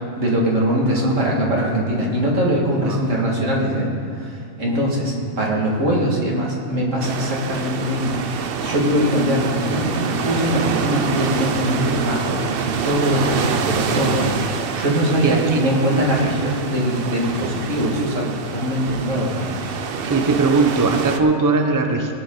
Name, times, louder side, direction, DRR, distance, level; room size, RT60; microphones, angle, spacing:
voice 1, 0.2-12.5 12.8-14.3 14.7-19.6, equal, 85° right, -3 dB, 2.4 m, -21 dB
voice 2, 2.7-3.1 15.1-15.7 20.1-22.1, right 3 dB, 20° right, 3 dB, 0.8 m, -20 dB
sound 1, 7.0-21.2, right 6 dB, 55° right, 0.8 m, -26 dB
18.5 x 9.1 x 3.9 m, 2.5 s
omnidirectional pair, 1.3 m